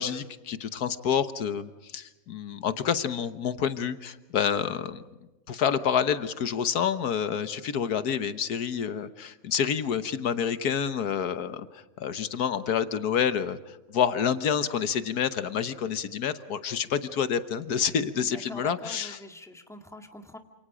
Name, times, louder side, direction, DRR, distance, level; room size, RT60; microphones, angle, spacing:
voice 1, 0.0-5.0 5.5-19.2, left 8 dB, 80° left, 12 dB, 1.6 m, -28 dB
voice 2, 18.2-20.4, left 1 dB, ahead, 5 dB, 1.8 m, -44 dB
28.5 x 27.5 x 5.1 m, 1.1 s
omnidirectional pair, 1.6 m